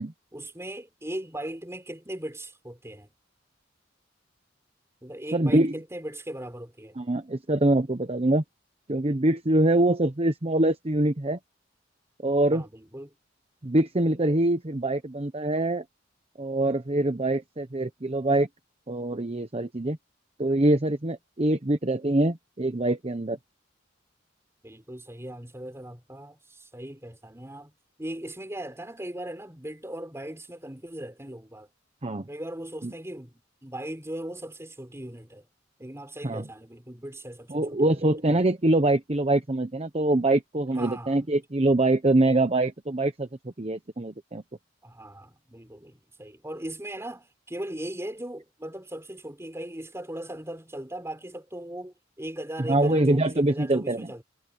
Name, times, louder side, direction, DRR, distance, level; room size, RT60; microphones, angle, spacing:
voice 1, 0.3-3.1 5.0-7.0 12.5-13.1 24.6-27.7 28.0-31.7 32.3-35.5 35.8-37.8 40.7-41.2 44.8-54.2, right 1 dB, 15° right, 5.0 m, -38 dB
voice 2, 5.3-5.7 7.0-8.4 8.9-11.4 12.2-12.7 13.6-15.8 16.4-18.5 18.9-20.0 20.4-23.4 32.0-32.3 32.8-32.9 36.2-36.4 37.5-44.4 52.6-54.1, right 1 dB, 35° right, 1.0 m, -24 dB
head